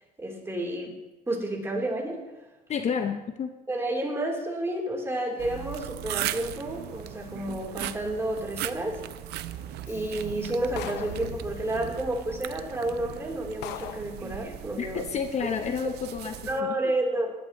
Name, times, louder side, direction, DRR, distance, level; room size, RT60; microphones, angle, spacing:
voice 1, 0.2-1.0 1.3-2.2 3.7-9.0 9.9-15.1 16.5-17.3, right 1 dB, 15° right, -1 dB, 3.3 m, -30 dB
voice 2, 2.7-3.5 14.8-16.3 16.6-16.8, left 6 dB, 40° left, 7 dB, 0.7 m, -30 dB
sound 1, 5.4-16.6, right 14 dB, 75° right, 0.5 m, -38 dB
Subway metro underground, 6.3-13.7, left 4 dB, 70° left, 2.8 m, -48 dB
sound 2, 10.8-11.3 12.4-12.5 13.0-13.1 13.6-14.2, left 11 dB, 90° left, 0.7 m, -38 dB
18.5 x 11.5 x 3.0 m, 1.0 s
cardioid pair, 110°, 17 cm